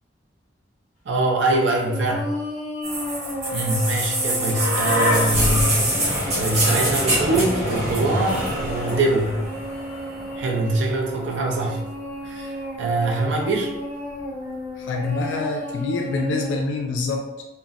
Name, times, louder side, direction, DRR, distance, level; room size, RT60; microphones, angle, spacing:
voice 1, 1.1-2.3 3.5-5.8 6.3-9.4 10.4-11.9 12.2-13.7, right 2 dB, 75° right, 0 dB, 0.5 m, -23 dB
sound 1, 1.8-16.5, equal, 15° left, 1.2 m, -34 dB
sound 2, 2.8-10.7 11.8-11.9, equal, 35° right, 1.2 m, -24 dB
voice 2, 14.8-17.4, left 3 dB, 80° left, 2 dB, 0.3 m, -26 dB
3.9 x 2.0 x 2.4 m, 1.0 s
head